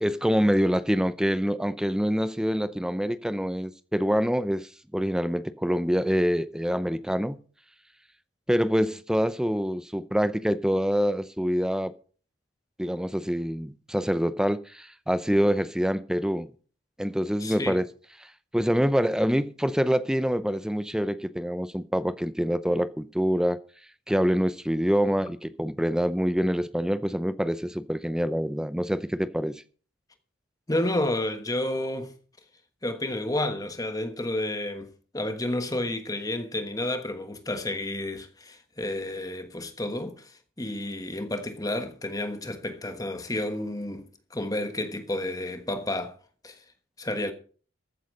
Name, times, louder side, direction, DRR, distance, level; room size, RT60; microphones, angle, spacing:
voice 1, 0.0-7.4 8.5-11.9 12.8-16.5 17.0-17.9 18.2-18.3 18.5-23.6 24.1-29.6, equal, 5° right, 0.5 m, -26 dB
voice 2, 17.4-17.8 25.2-25.3 30.7-32.1 32.8-46.2 46.4-46.6 47.0-47.3, left 1 dB, 15° left, 1.3 m, -31 dB
14.5 x 8.3 x 5.4 m
head